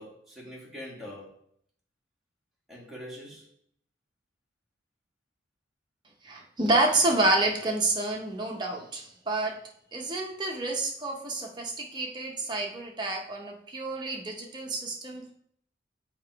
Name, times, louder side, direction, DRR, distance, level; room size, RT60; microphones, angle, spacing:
voice 1, 0.0-1.4 2.7-3.5, equal, ahead, -5 dB, 1.6 m, -43 dB
voice 2, 6.2-9.6 9.9-15.3, right 2 dB, 25° right, 0 dB, 0.8 m, -28 dB
7.2 x 3.0 x 4.6 m, 0.66 s
head